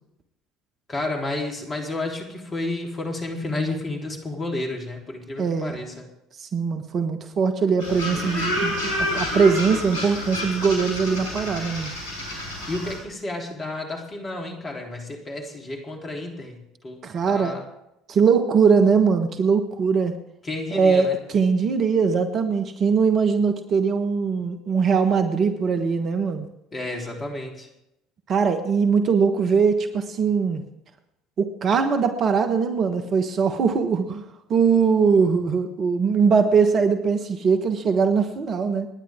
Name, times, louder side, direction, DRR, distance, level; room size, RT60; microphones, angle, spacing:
voice 1, 0.9-6.1 12.7-16.6 16.8-17.0 17.3-17.7 20.4-21.2 26.7-27.7, left 2 dB, 30° left, 1 dB, 3.7 m, -31 dB
voice 2, 5.4-5.8 6.4-11.9 17.0-17.5 18.1-20.1 20.7-26.5 28.3-30.6 31.4-34.2 34.5-38.9, right 5 dB, 40° right, 7 dB, 1.4 m, -21 dB
sound 1, 7.8-13.0, left 1 dB, 65° left, 5.9 m, -29 dB
28.5 x 10.0 x 3.7 m, 0.86 s
figure-of-eight pair, 60°, 0 cm